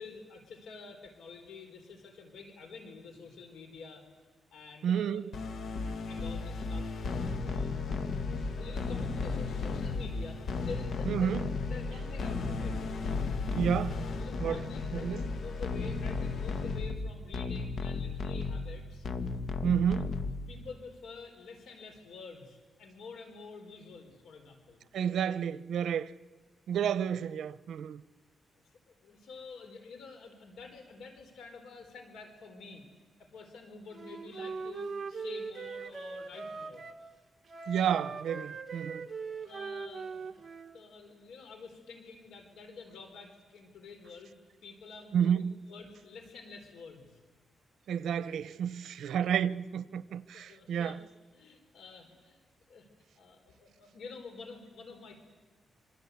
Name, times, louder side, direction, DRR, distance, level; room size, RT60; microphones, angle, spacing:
voice 1, 0.0-4.0 4.5-5.2 5.8-7.0 7.4-7.9 8.3-11.4 11.7-12.8 14.2-19.1 20.5-24.8 28.6-32.9 33.2-36.8 39.3-40.3 40.7-44.4 44.6-47.2 50.1-51.0 51.3-52.4 52.7-52.9 53.2-55.2, left 4 dB, 85° left, 4.1 m, -48 dB
voice 2, 4.8-5.3 11.0-11.5 13.5-14.1 14.4-14.6 14.9-15.2 19.6-20.1 24.9-26.1 26.7-28.0 37.7-39.1 45.1-45.5 47.9-51.0, right 8 dB, 80° right, 0.9 m, -30 dB
sound 1, 5.3-20.7, left 4 dB, 60° left, 1.8 m, -34 dB
Wind instrument woodwind instrument, 33.9-37.0 37.5-40.7, right 4 dB, 35° right, 1.9 m, -40 dB
27.0 x 25.0 x 8.4 m
cardioid pair, 125°, 0 cm